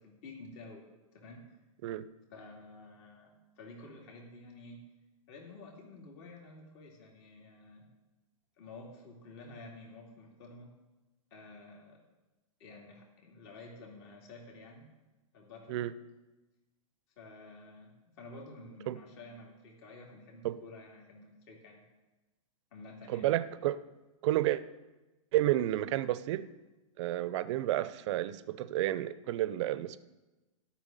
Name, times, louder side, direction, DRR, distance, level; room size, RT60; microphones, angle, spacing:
voice 1, 0.0-1.4 2.3-4.8 5.3-7.9 8.6-10.7 11.3-12.0 12.6-14.9 15.3-15.8 17.2-21.9 22.7-23.3, left 2 dB, 50° left, 0 dB, 2.5 m, -51 dB
voice 2, 23.1-23.8 24.2-24.6 25.3-26.5 27.0-30.0, right 14 dB, 50° right, 16 dB, 0.6 m, -31 dB
12.5 x 6.0 x 7.5 m, 1.1 s
hypercardioid pair, 115°, 19 cm